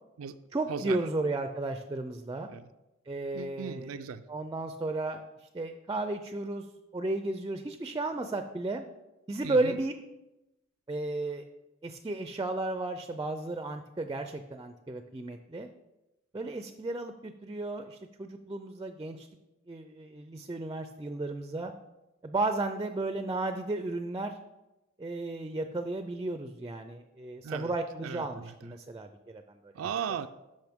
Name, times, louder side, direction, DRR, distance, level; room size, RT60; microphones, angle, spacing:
voice 1, 0.5-2.5 3.1-4.0 4.3-6.7 6.9-8.8 9.3-10.0 10.9-11.5 11.8-15.7 16.3-19.3 19.7-21.7 22.2-24.4 25.0-29.7, right 2 dB, 20° right, 8 dB, 0.4 m, -34 dB
voice 2, 3.3-4.2 9.4-9.8 27.4-27.7 28.0-28.5 29.8-30.3, right 7 dB, 85° right, 9 dB, 0.4 m, -37 dB
12.0 x 5.1 x 3.6 m, 0.97 s
head